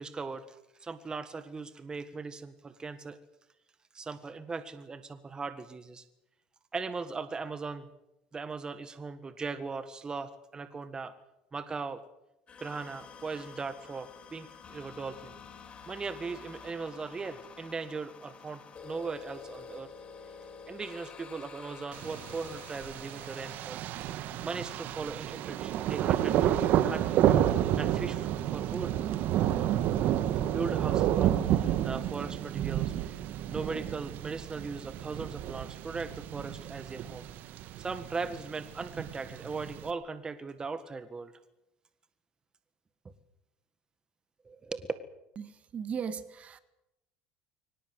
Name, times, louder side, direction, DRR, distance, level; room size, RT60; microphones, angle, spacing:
voice 1, 0.0-3.2 3.9-6.0 6.7-7.9 8.3-11.1 11.5-12.0 12.6-15.3 15.9-19.9 20.7-23.9 24.4-27.1 27.8-29.0 30.4-37.3 37.8-41.3 44.5-44.9, right 4 dB, 25° right, 11 dB, 1.7 m, -39 dB
sound 1, 12.5-23.6, left 5 dB, 35° left, 4.2 m, -49 dB
Thunder, 21.9-39.9, right 11 dB, 60° right, 1.4 m, -30 dB
voice 2, 45.4-46.6, right 7 dB, 40° right, 12 dB, 1.9 m, -37 dB
23.5 x 19.0 x 8.0 m, 0.90 s
supercardioid pair, 95°, 4 cm